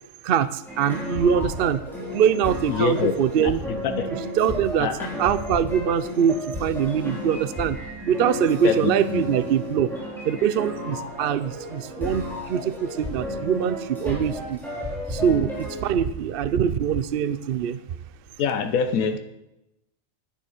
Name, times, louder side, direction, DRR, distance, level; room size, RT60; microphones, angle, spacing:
voice 1, 0.2-1.8 2.1-3.6 4.4-4.9 5.2-7.8 8.1-9.9 10.2-14.6 15.1-17.8, right 8 dB, 60° right, 14 dB, 0.6 m, -23 dB
sound 1, 0.7-15.9, left 1 dB, ahead, 4.1 m, -33 dB
voice 2, 2.7-3.1 3.4-4.1 4.8-5.1 8.6-9.3 18.4-19.2, left 6 dB, 85° left, 8 dB, 1.3 m, -25 dB
10.5 x 9.9 x 6.5 m, 0.91 s
omnidirectional pair, 1.4 m